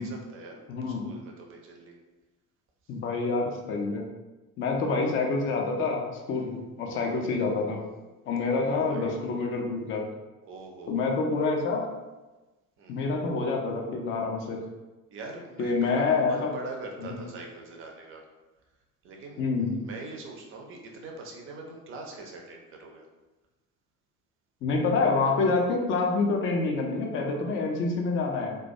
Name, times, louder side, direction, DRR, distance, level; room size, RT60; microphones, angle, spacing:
voice 1, 0.0-2.0 6.3-6.6 6.9-7.2 8.5-9.2 10.5-11.2 12.8-13.0 15.1-18.2 19.0-23.1, right 3 dB, 30° right, 1 dB, 0.5 m, -43 dB
voice 2, 0.7-1.1 2.9-4.1 4.6-7.8 8.3-10.1 10.9-11.9 12.9-14.6 15.6-16.5 17.0-17.2 19.4-19.7 24.6-28.6, left 3 dB, 30° left, 1 dB, 0.4 m, -27 dB
2.2 x 2.1 x 2.6 m, 1.1 s
figure-of-eight pair, 55°, 46 cm